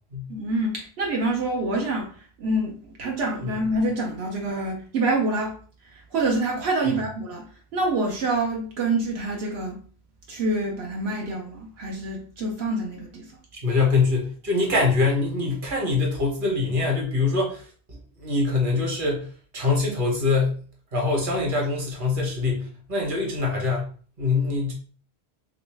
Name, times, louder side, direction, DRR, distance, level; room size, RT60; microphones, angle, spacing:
voice 1, 0.3-2.1 2.4-5.6 5.9-9.8 10.3-13.3, right 2 dB, 85° right, 1.0 m, -26 dB
voice 2, 13.5-17.6 17.9-20.6 20.9-23.9 24.2-24.7, left 3 dB, 55° right, 1.3 m, -24 dB
3.1 x 3.0 x 3.2 m
omnidirectional pair, 1.0 m